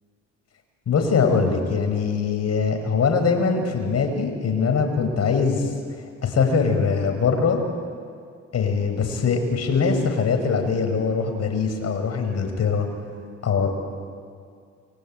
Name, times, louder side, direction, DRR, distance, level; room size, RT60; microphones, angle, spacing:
voice 1, 0.9-5.7 6.2-7.6 8.5-12.9 13.4-13.7, left 5 dB, 55° left, 5 dB, 5.4 m, -22 dB
29.0 x 23.0 x 9.0 m, 2.2 s
cardioid pair, 90°, 30 cm